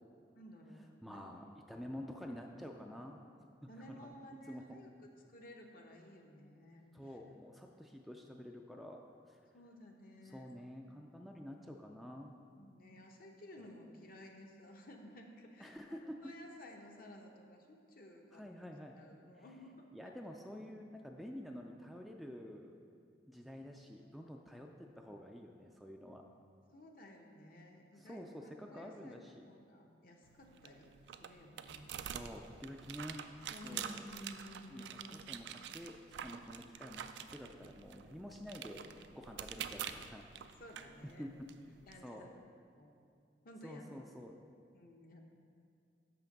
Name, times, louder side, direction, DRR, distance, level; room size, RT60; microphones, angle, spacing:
voice 1, 0.3-1.3 3.7-7.2 9.5-10.5 12.5-18.4 19.0-20.1 26.7-30.9 31.2-32.0 33.5-35.2 40.4-41.3 41.9-42.3 42.8-42.9 43.4-43.9 44.7-45.3, left 1 dB, 55° left, 2 dB, 0.8 m, -55 dB
voice 2, 1.0-3.2 4.0-4.6 6.9-9.0 9.3-9.4 10.2-12.4 13.6-13.7 15.6-16.2 18.3-18.9 19.4-19.5 19.9-22.8 23.3-26.2 28.0-29.5 32.0-33.2 33.6-34.0 34.7-34.8 35.1-35.4 35.7-40.2 41.0-41.3 42.0-42.3 43.6-44.4, equal, ahead, 2 dB, 0.3 m, -49 dB
sound 1, 30.2-41.9, right 9 dB, 75° right, 0.3 m, -47 dB
6.6 x 5.8 x 5.2 m, 2.3 s
head